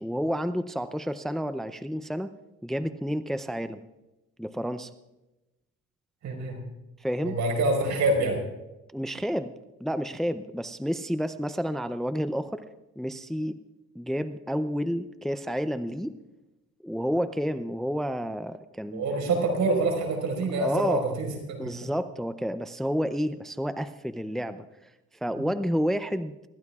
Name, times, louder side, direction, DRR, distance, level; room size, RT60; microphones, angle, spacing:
voice 1, 0.0-2.3 2.6-3.8 4.4-4.9 7.0-7.4 8.9-9.5 9.8-12.6 13.0-13.6 14.0-16.1 16.8-19.1 20.6-21.2 21.6-24.6 25.2-26.4, equal, ahead, 11 dB, 0.5 m, -30 dB
voice 2, 6.2-6.6 7.2-8.4 18.9-21.9 25.4-25.5, right 2 dB, 70° right, 1 dB, 4.9 m, -26 dB
25.0 x 14.0 x 2.4 m, 1.0 s
cardioid pair, 90°, 30 cm